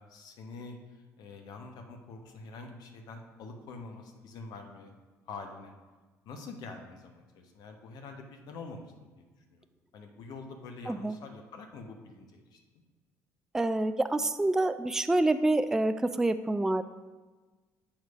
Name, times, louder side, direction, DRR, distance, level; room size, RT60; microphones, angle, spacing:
voice 1, 0.1-0.8 1.2-4.9 5.3-5.7 6.3-8.8 9.2-9.3 9.5-9.6 9.9-12.6, left 3 dB, 50° left, 4 dB, 1.0 m, -45 dB
voice 2, 13.5-16.8, right 2 dB, 5° right, 11 dB, 0.3 m, -27 dB
8.7 x 3.1 x 5.0 m, 1.3 s
figure-of-eight pair, 50°, 9 cm